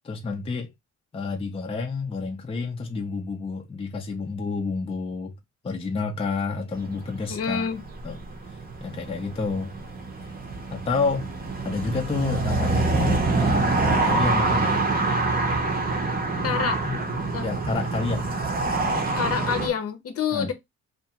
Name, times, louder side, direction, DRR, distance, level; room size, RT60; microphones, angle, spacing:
voice 1, 0.0-0.7 1.1-5.4 5.6-7.7 8.0-8.2 8.8-9.7 10.7-11.3 11.6-14.9 16.6-17.2 17.4-18.4 20.3-20.5, left 4 dB, 20° left, 0.5 m, -29 dB
sound 1, 6.7-19.7, right 3 dB, 30° right, 0.7 m, -26 dB
voice 2, 7.3-7.8 16.4-16.8 17.3-17.4 19.2-20.5, left 6 dB, 50° left, 0.7 m, -27 dB
2.5 x 2.3 x 2.8 m
cardioid pair, 90°, 30 cm